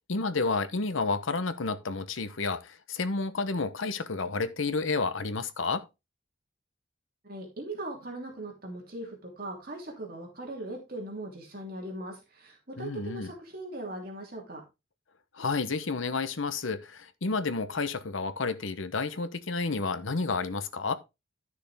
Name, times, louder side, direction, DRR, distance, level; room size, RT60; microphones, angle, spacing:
voice 1, 0.1-5.8 12.8-13.3 15.3-20.9, left 4 dB, 85° left, 1.0 m, -30 dB
voice 2, 7.2-14.6, right 1 dB, 50° right, 3.0 m, -39 dB
12.5 x 6.4 x 3.5 m
head